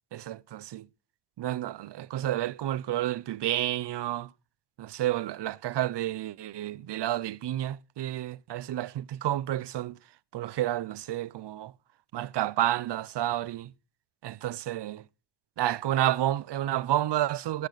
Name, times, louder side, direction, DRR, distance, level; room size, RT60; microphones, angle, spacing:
voice 1, 0.1-0.9 1.4-4.3 4.8-11.7 12.1-13.7 14.2-15.1 15.6-17.7, right 13 dB, 55° right, 0.6 m, -30 dB
13.5 x 13.5 x 4.0 m
cardioid pair, 95°, 49 cm